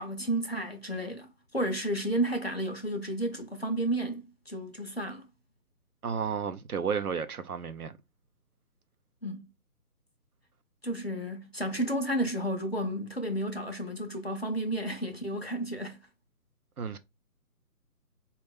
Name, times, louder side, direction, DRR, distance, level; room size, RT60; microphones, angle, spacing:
voice 1, 0.0-5.3 9.2-9.5 10.8-16.0, right 1 dB, 40° left, 0.5 m, -32 dB
voice 2, 6.0-7.9 16.8-17.0, right 6 dB, 65° right, 0.7 m, -32 dB
4.3 x 2.3 x 3.4 m
hypercardioid pair, 180°, 48 cm